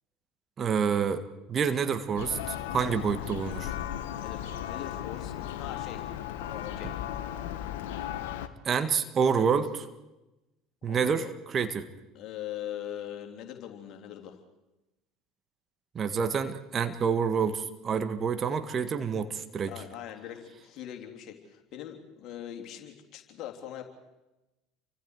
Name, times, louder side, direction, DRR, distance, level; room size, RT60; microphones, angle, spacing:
voice 1, 0.6-1.2 1.5-3.7 8.7-9.9 10.8-11.9 16.0-19.7, right 6 dB, 35° right, 10 dB, 1.8 m, -28 dB
Church bell, 2.2-8.5, left 11 dB, 70° left, 1.2 m, -36 dB
voice 2, 4.1-6.1 6.5-7.0 9.3-9.5 10.9-11.3 12.1-14.4 19.6-23.8, left 11 dB, 50° left, 3 dB, 3.4 m, -41 dB
29.0 x 25.0 x 4.9 m, 1.0 s
hypercardioid pair, 65°, 0 cm